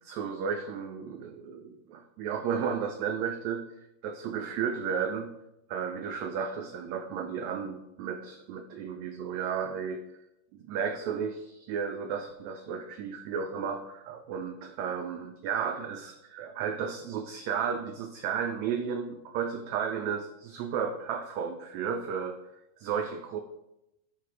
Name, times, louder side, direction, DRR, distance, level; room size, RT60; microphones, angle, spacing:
voice 1, 0.0-3.7 4.0-5.3 5.7-10.0 10.5-22.4 22.8-23.4, right 7 dB, 90° right, 5 dB, 1.5 m, -33 dB
8.5 x 4.7 x 4.7 m, 0.89 s
omnidirectional pair, 3.8 m